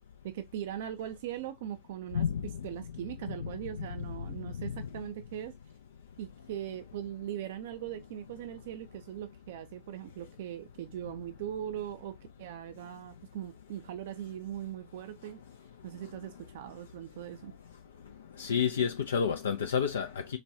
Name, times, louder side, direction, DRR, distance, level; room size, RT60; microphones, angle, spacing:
voice 1, 0.2-2.3 2.6-5.5 6.2-15.4 15.8-17.5, right 11 dB, 65° right, 0.4 m, -40 dB
voice 2, 2.1-2.7 3.3-3.5 3.8-4.3 4.6-4.8 18.4-20.4, left 7 dB, 75° left, 0.3 m, -31 dB
4.0 x 2.2 x 2.6 m
figure-of-eight pair, 85°, 0 cm